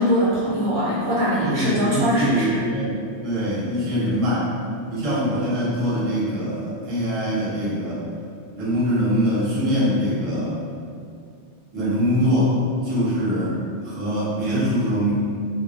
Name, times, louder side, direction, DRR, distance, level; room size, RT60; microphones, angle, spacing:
voice 1, 0.0-2.6, equal, 65° right, -8 dB, 0.8 m, -21 dB
voice 2, 1.4-4.5 4.9-8.0 8.6-10.6 11.7-12.5 12.8-13.6 13.8-15.1, equal, 35° right, -9 dB, 0.7 m, -23 dB
2.2 x 2.1 x 2.9 m, 2.3 s
omnidirectional pair, 1.2 m